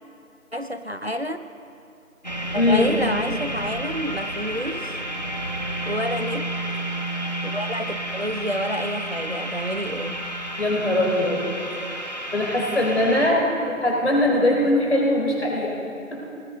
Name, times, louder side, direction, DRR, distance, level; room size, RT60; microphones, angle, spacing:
voice 1, 0.5-1.4 2.5-5.0 5.9-6.5 7.4-10.2, equal, 50° right, 9 dB, 0.6 m, -29 dB
sound 1, 2.2-13.3, right 1 dB, 30° left, 1.1 m, -31 dB
voice 2, 2.5-3.0 10.6-11.4 12.3-16.2, left 1 dB, 50° left, -2 dB, 3.6 m, -21 dB
19.0 x 19.0 x 3.7 m, 2.7 s
figure-of-eight pair, 175°, 42 cm